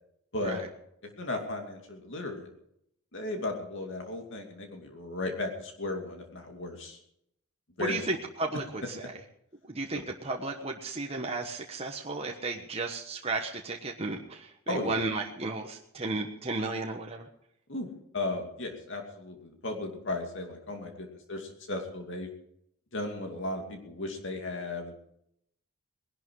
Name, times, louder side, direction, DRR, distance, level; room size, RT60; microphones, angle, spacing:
voice 1, 1.2-2.5 3.1-7.0 7.8-8.0 14.7-15.0 17.7-17.9 18.1-22.3 22.9-24.9, left 2 dB, 55° left, 3 dB, 2.6 m, -35 dB
voice 2, 7.8-9.1 9.7-17.3, right 3 dB, 30° right, 1 dB, 1.2 m, -34 dB
20.0 x 12.0 x 4.8 m, 0.74 s
head